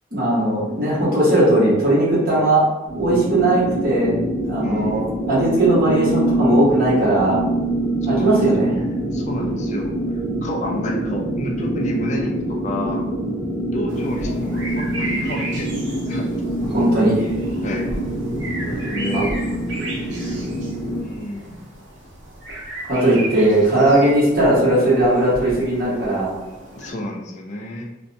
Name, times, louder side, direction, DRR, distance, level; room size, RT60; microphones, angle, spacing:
voice 1, 0.1-2.6 3.0-4.2 4.4-7.4 8.1-8.7 16.7-17.3 19.1-19.3 22.9-26.3, right 1 dB, 50° right, -8 dB, 1.1 m, -18 dB
sound 1, 2.9-21.0, right 1 dB, 10° right, 1.2 m, -25 dB
voice 2, 4.6-5.1 8.1-9.9 10.4-13.0 13.7-16.3 17.6-17.9 18.6-19.3 21.0-21.6 26.7-27.8, left 1 dB, 35° left, 0 dB, 0.4 m, -30 dB
sound 2, 13.9-26.9, right 1 dB, 75° right, 0.7 m, -35 dB
2.5 x 2.1 x 2.5 m, 1.0 s
head